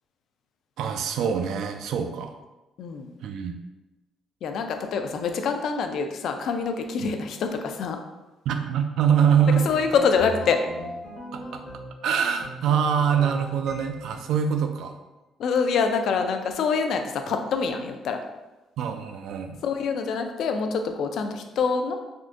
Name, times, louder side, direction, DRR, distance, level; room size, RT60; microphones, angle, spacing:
voice 1, 0.8-2.4 3.2-3.5 7.0-7.1 8.5-9.6 11.3-11.6 12.0-15.0 18.8-19.6, right 7 dB, 75° right, 6 dB, 0.3 m, -24 dB
voice 2, 2.8-3.1 4.4-8.0 9.7-10.6 15.4-18.2 19.6-22.0, left 5 dB, 60° left, 6 dB, 0.3 m, -25 dB
sound 1, 9.4-12.0 12.4-14.3, equal, 40° left, 0.7 m, -39 dB
3.6 x 2.5 x 2.4 m, 1.1 s
cardioid pair, 145°, 0 cm